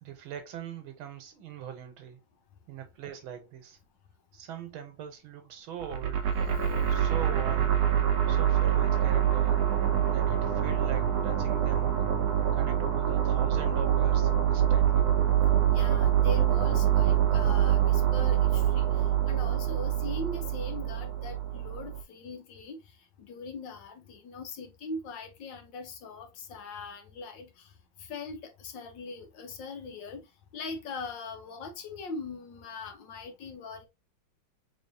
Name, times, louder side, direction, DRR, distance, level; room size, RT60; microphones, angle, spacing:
voice 1, 0.0-2.2 2.7-3.8 4.3-6.3 6.9-7.8 8.3-9.6 10.1-12.1 12.5-15.1, right 9 dB, 80° right, 1.7 m, -42 dB
sound 1, 5.8-22.0, right 10 dB, 65° right, 1.1 m, -25 dB
voice 2, 15.7-22.8 23.2-27.7 28.0-30.3 30.5-33.9, left 3 dB, 70° left, 1.4 m, -41 dB
4.0 x 3.7 x 2.7 m
omnidirectional pair, 2.2 m